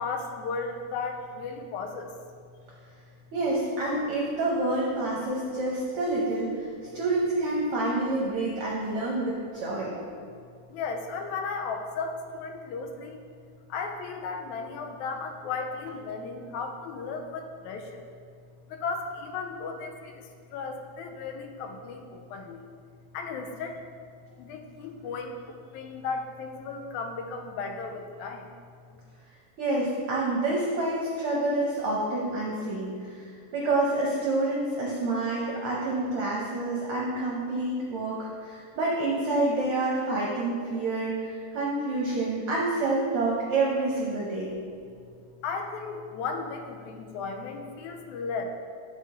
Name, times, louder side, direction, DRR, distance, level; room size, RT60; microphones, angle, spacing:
voice 1, 0.0-2.1 10.2-10.3 10.7-13.2 13.7-18.1 18.7-22.6 23.1-23.8 24.4-28.5 28.9-29.0 45.4-48.5, left 4 dB, 85° left, 4 dB, 2.0 m, -35 dB
voice 2, 3.3-6.7 6.9-9.9 29.6-44.5, right 2 dB, 65° right, -4 dB, 1.4 m, -28 dB
9.7 x 4.2 x 3.6 m, 2.2 s
omnidirectional pair, 3.4 m